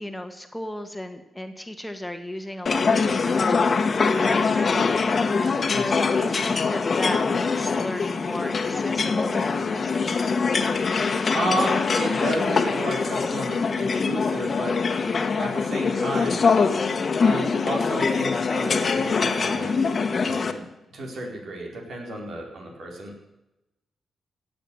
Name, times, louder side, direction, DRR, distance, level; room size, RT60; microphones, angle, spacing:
voice 1, 0.0-10.2, left 1 dB, 10° left, 5 dB, 1.7 m, -35 dB
sound 1, 2.7-20.5, left 4 dB, 50° left, 1.5 m, -23 dB
voice 2, 5.7-6.0 11.3-14.8 15.4-16.5 17.2-23.1, right 1 dB, 70° right, 0 dB, 4.6 m, -32 dB
17.5 x 7.8 x 7.9 m, 0.96 s
cardioid pair, 70°, 0 cm